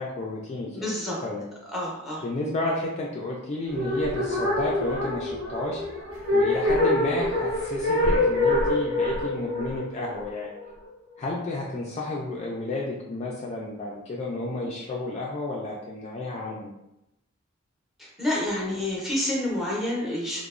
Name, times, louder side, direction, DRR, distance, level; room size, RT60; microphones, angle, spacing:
voice 1, 0.0-0.9 1.2-1.5 2.2-5.8 6.3-10.5 11.2-16.7, left 2 dB, 35° left, -3 dB, 0.3 m, -31 dB
voice 2, 0.7-1.2 1.7-2.2 18.0-20.4, left 1 dB, ahead, -4 dB, 0.7 m, -28 dB
sound 1, 3.7-10.8, left 1 dB, 65° right, 0.9 m, -25 dB
3.0 x 2.1 x 2.4 m, 0.87 s
head